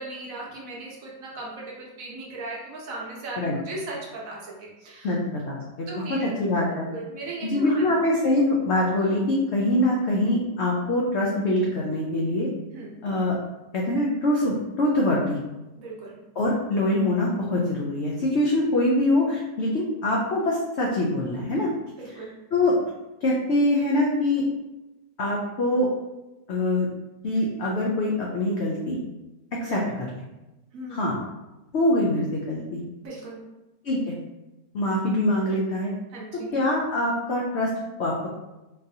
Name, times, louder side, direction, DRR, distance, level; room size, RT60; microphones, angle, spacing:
voice 1, 0.0-5.1 5.9-6.3 6.7-8.0 12.7-12.9 15.7-16.2 22.0-22.3 29.6-29.8 30.7-31.0 33.0-33.4 36.1-36.5, right 2 dB, 65° right, -3 dB, 1.1 m, -37 dB
voice 2, 5.0-6.9 7.4-12.5 13.0-13.4 13.7-15.4 16.4-21.7 22.5-22.8 23.2-24.5 25.2-25.9 26.5-26.9 27.2-29.0 29.5-30.2 30.9-31.2 31.7-32.8 33.8-34.1 34.7-35.9 36.5-37.7 38.0-38.3, left 1 dB, 75° left, -3 dB, 0.6 m, -24 dB
3.8 x 2.5 x 2.7 m, 1.0 s
omnidirectional pair, 1.7 m